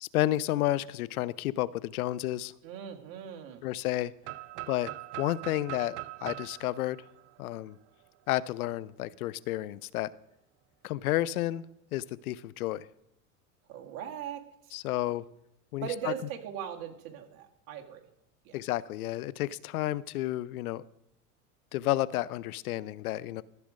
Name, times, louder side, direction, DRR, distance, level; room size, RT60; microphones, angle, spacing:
voice 1, 0.0-2.5 3.6-4.1 4.7-4.9 5.2-7.0 7.4-7.8 8.3-10.1 10.8-11.6 11.9-12.9 14.7-15.2 15.7-16.1 18.5-20.8 21.7-23.4, left 15 dB, 85° left, 20 dB, 0.5 m, -31 dB
voice 2, 2.6-3.7 13.7-14.8 15.8-18.1 18.4-18.6, right 9 dB, 55° right, 3 dB, 1.9 m, -39 dB
sound 1, 4.2-8.1, right 17 dB, 35° right, 0.4 m, -42 dB
14.0 x 5.0 x 6.4 m, 0.80 s
hypercardioid pair, 100°, 42 cm